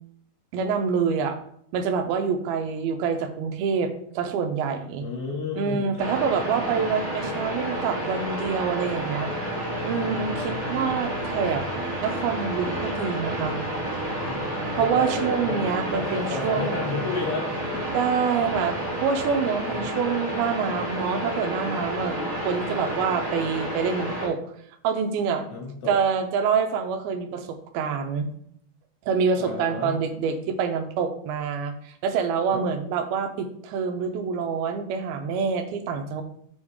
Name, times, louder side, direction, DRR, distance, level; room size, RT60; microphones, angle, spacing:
voice 1, 0.5-1.4 1.7-5.1 5.6-9.3 9.8-11.6 12.0-13.6 14.8-16.8 17.9-18.8 19.0-22.2 22.4-24.4 24.8-25.4 25.9-28.3 29.1-36.2, right 6 dB, 85° right, 6 dB, 2.6 m, -26 dB
voice 2, 5.0-5.9 10.8-10.9 14.1-15.6 15.9-17.9 19.5-19.9 25.5-26.0 29.4-30.0 32.5-32.6, left 4 dB, 75° left, -2 dB, 3.8 m, -32 dB
sound 1, 6.0-24.3, right 1 dB, 45° right, 3.0 m, -30 dB
6.9 x 5.2 x 3.6 m, 0.68 s
omnidirectional pair, 4.3 m